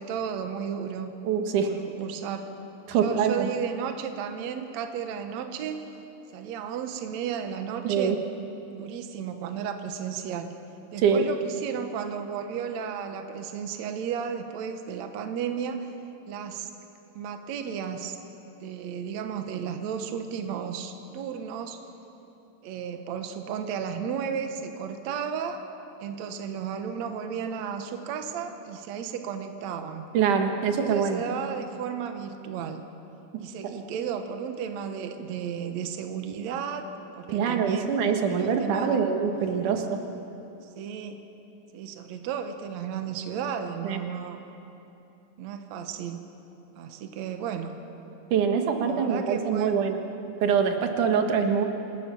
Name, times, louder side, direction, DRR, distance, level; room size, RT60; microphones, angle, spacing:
voice 1, 0.0-1.1 1.7-2.5 3.0-5.8 6.3-8.2 8.7-10.5 10.9-15.9 16.3-16.7 17.1-18.2 18.6-21.8 22.6-25.6 26.0-30.1 30.7-32.8 33.4-36.9 37.1-38.0 38.3-39.0 40.6-41.2 41.7-44.4 45.4-46.2 46.8-47.7 48.8-49.8, right 7 dB, 85° right, 7 dB, 1.5 m, -33 dB
voice 2, 1.2-1.7 2.9-3.5 7.8-8.2 11.0-11.2 30.1-31.2 37.3-40.0 43.8-44.0 48.3-50.0 50.4-51.7, right 6 dB, 60° right, 5 dB, 2.5 m, -24 dB
27.0 x 17.5 x 6.9 m, 2.9 s
omnidirectional pair, 4.8 m